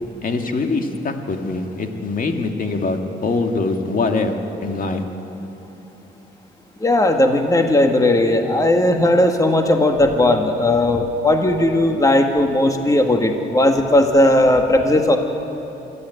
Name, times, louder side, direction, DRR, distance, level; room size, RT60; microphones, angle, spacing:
voice 1, 0.2-4.3 4.6-5.0, left 3 dB, 45° left, 4 dB, 2.3 m, -23 dB
voice 2, 6.8-15.2, left 1 dB, 15° left, 4 dB, 1.8 m, -16 dB
25.5 x 12.5 x 9.3 m, 2.9 s
cardioid pair, 90°, 20 cm